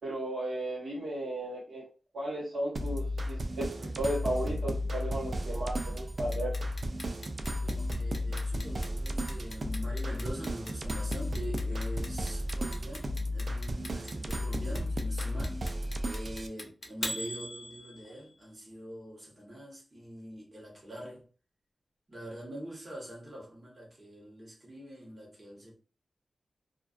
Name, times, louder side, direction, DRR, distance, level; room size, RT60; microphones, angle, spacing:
voice 1, 0.0-1.8 2.1-6.5, right 1 dB, 75° right, 1.1 m, -35 dB
sound 1, 2.7-16.5, left 1 dB, 50° right, 0.3 m, -34 dB
Clock, 6.3-18.3, left 1 dB, 40° left, 0.6 m, -41 dB
voice 2, 7.5-15.6 16.1-21.3 22.1-25.7, right 1 dB, 30° right, 1.1 m, -44 dB
2.4 x 2.2 x 2.4 m
wide cardioid pair, 90°, 0 cm